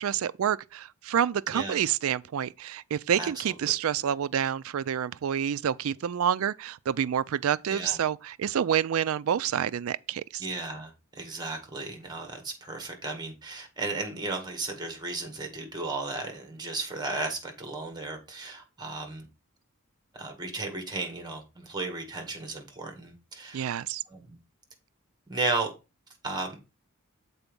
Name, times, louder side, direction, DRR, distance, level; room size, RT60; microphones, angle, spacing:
voice 1, 0.0-10.5 23.5-24.0, right 9 dB, 70° right, 0.4 m, -28 dB
voice 2, 10.4-19.3 20.2-23.6 24.1-24.3 25.3-25.7 26.2-26.6, right 3 dB, 20° right, 1.7 m, -34 dB
7.1 x 4.2 x 5.3 m
head